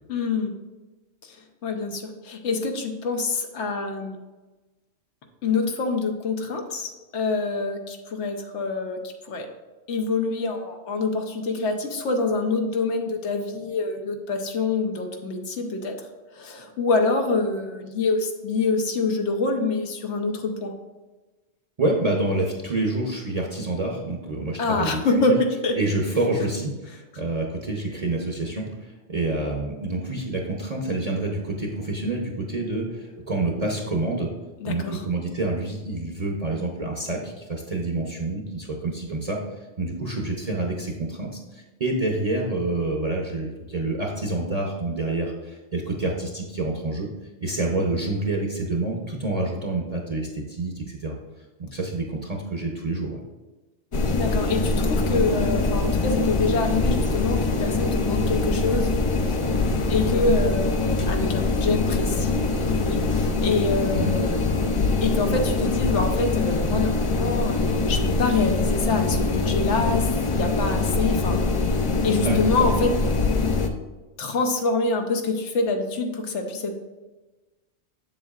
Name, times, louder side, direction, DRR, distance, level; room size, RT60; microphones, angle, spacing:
voice 1, 0.1-0.5 1.2-4.2 5.4-9.0 9.2-9.5 9.9-16.1 16.3-20.7 24.6-25.8 34.6-35.0 54.1-58.9 59.2-59.4 59.9-64.3 65.0-71.4 72.0-72.9 74.2-76.7, left 3 dB, 75° left, 4 dB, 1.1 m, -26 dB
voice 2, 21.8-25.3 25.7-34.3 34.6-39.4 39.8-47.1 47.4-51.2 51.6-53.2 63.9-64.1 72.2-72.7, right 2 dB, 35° right, -1 dB, 0.7 m, -27 dB
sound 1, 53.9-73.7, left 3 dB, 50° left, 0.4 m, -23 dB
7.4 x 7.3 x 2.4 m, 1.2 s
omnidirectional pair, 1.2 m